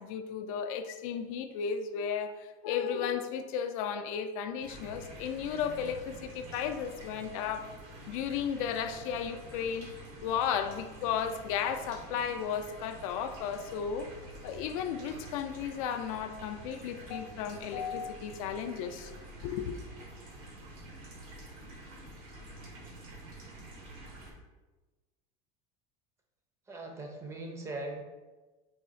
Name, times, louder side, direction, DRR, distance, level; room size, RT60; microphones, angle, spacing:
voice 1, 0.0-7.6 8.1-9.9 10.2-14.1 14.4-19.1 19.4-19.8, left 7 dB, 80° left, 8 dB, 0.4 m, -34 dB
sound 1, 4.6-24.3, right 1 dB, 85° right, 1.4 m, -48 dB
voice 2, 26.7-28.0, right 2 dB, 15° right, 2 dB, 0.5 m, -40 dB
4.1 x 2.7 x 4.0 m, 1.2 s
cardioid pair, 160°, 17 cm